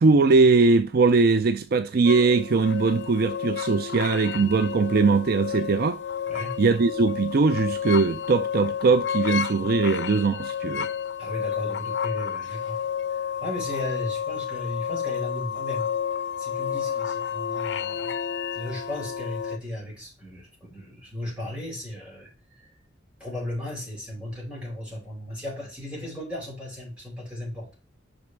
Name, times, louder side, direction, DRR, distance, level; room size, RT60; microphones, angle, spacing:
voice 1, 0.0-6.0 6.6-10.9, right 4 dB, 55° right, 0.4 m, -21 dB
sound 1, 2.0-19.6, left 8 dB, 65° left, 0.5 m, -31 dB
voice 2, 6.3-6.6 11.2-12.8 13.1-15.9 16.4-18.1 18.5-22.7 23.2-27.7, left 1 dB, 5° right, 4.4 m, -36 dB
6.0 x 5.3 x 4.5 m
head